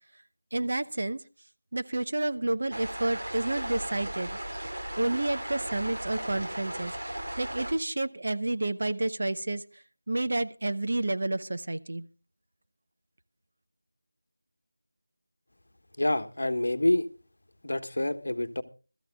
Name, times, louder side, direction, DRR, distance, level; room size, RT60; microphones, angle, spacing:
voice 1, 0.5-1.2 1.7-4.4 5.0-12.0, right 2 dB, 40° right, 11 dB, 0.7 m, -30 dB
sound 1, 2.7-7.7, right 1 dB, 80° right, 4.2 m, -36 dB
voice 2, 16.0-17.1 17.6-18.6, left 1 dB, 60° left, 10 dB, 1.3 m, -27 dB
22.0 x 13.5 x 2.3 m, 0.34 s
figure-of-eight pair, 180°, 0 cm